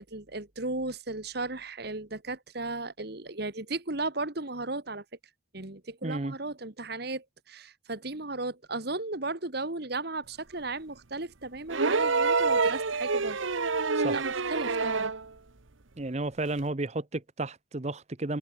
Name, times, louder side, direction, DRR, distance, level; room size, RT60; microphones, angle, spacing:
voice 1, 0.0-5.0 5.5-13.5 13.8-15.1, right 2 dB, 55° right, 1.9 m, -35 dB
voice 2, 6.0-6.4 13.9-14.2 16.0-18.4, right 2 dB, 35° right, 0.9 m, -32 dB
sound 1, 11.7-15.2 16.6-16.7, right 4 dB, 85° right, 1.3 m, -27 dB
head